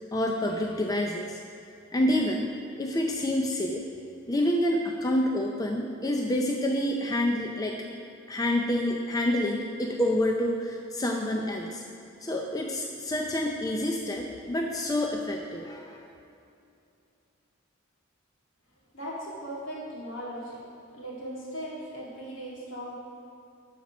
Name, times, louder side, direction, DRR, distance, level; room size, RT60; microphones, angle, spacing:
voice 1, 0.1-1.4 1.9-2.5 2.8-3.8 4.3-8.0 8.3-11.8 12.2-16.1, left 1 dB, 20° left, 1 dB, 0.5 m, -28 dB
voice 2, 18.9-20.6 20.9-23.0, equal, 65° left, -5 dB, 2.4 m, -38 dB
11.5 x 4.3 x 6.1 m, 2.5 s
head